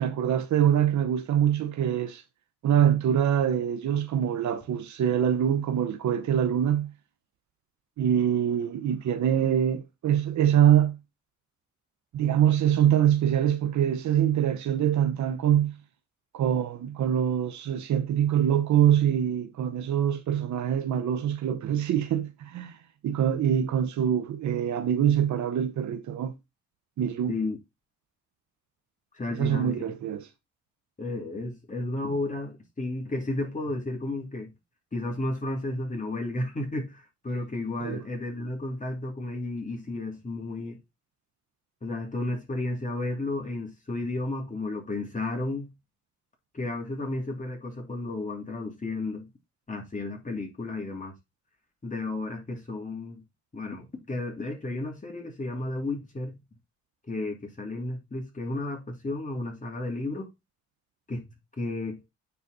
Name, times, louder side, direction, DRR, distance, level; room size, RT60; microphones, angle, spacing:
voice 1, 0.0-2.2 2.6-6.9 8.0-11.0 12.1-15.7 16.3-22.8 23.0-26.3 27.0-27.3 29.3-30.3 37.8-38.0, right 9 dB, 70° right, 1.0 m, -24 dB
voice 2, 29.1-29.8 31.0-34.5 34.9-40.8 41.8-45.7 46.5-49.3 49.7-51.1 51.8-53.2 53.5-56.4 57.1-60.3 61.1-61.2 61.6-62.0, left 2 dB, 25° left, 2.7 m, -33 dB
9.3 x 4.2 x 4.1 m
cardioid pair, 90°, 30 cm